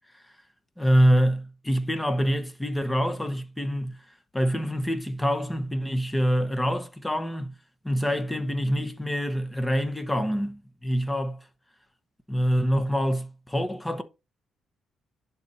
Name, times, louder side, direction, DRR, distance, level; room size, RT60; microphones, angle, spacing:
voice 1, 0.8-4.0 4.3-7.5 7.8-11.5 12.3-14.0, equal, 10° left, 0.9 m, -25 dB
10.5 x 4.1 x 2.6 m
cardioid pair, 90°, 0 cm